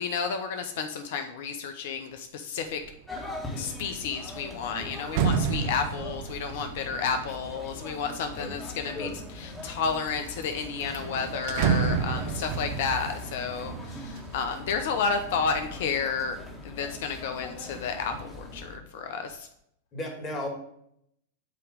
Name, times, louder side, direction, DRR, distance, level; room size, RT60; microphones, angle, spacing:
voice 1, 0.0-2.8 3.6-16.4 16.6-19.5, left 5 dB, 60° left, 7 dB, 0.6 m, -31 dB
sound 1, 2.7-3.1 3.5-8.8 9.4-10.1 10.4-10.5 10.8-14.7 15.1-15.7, right 6 dB, 55° right, 0.6 m, -31 dB
sound 2, 3.1-18.8, left 2 dB, 10° left, 1.5 m, -41 dB
voice 2, 19.9-20.5, left 1 dB, 30° left, 1 dB, 2.1 m, -34 dB
8.1 x 3.0 x 5.0 m, 0.73 s
hypercardioid pair, 95°, 0 cm